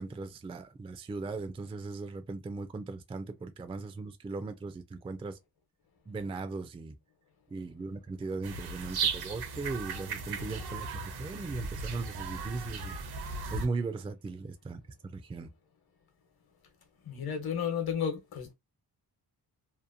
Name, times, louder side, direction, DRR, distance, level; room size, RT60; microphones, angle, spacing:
voice 1, 0.0-5.4 6.1-6.9 7.5-13.0 13.5-14.8 15.1-15.5, right 3 dB, 15° right, 0.3 m, -38 dB
sound 1, 8.4-13.7, right 4 dB, 70° right, 0.7 m, -36 dB
voice 2, 17.0-18.5, left 7 dB, 65° left, 1.0 m, -32 dB
2.8 x 2.2 x 2.4 m
wide cardioid pair, 125°, 39 cm